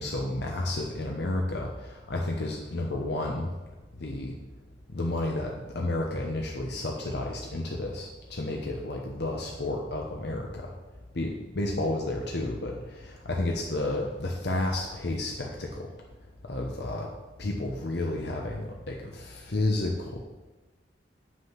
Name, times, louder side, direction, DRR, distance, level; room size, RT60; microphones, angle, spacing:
voice 1, 0.0-1.7 2.1-3.5 4.0-4.3 4.9-10.7 11.1-12.7 13.0-15.9 16.4-17.1 17.4-20.2, left 2 dB, 65° left, 0 dB, 1.0 m, -31 dB
7.5 x 6.4 x 5.8 m, 1.2 s
head